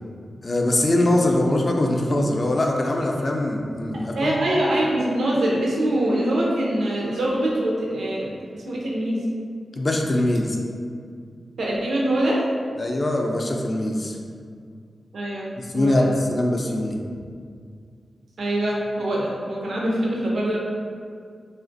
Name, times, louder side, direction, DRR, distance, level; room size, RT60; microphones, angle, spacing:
voice 1, 0.4-4.4 9.8-10.6 12.8-14.2 15.6-17.0, left 1 dB, 35° left, 1 dB, 0.4 m, -22 dB
voice 2, 3.9-9.2 11.6-12.4 15.1-16.1 18.4-20.6, right 1 dB, 80° right, -4 dB, 0.6 m, -24 dB
3.1 x 2.4 x 2.5 m, 2.2 s
cardioid pair, 80°, 0 cm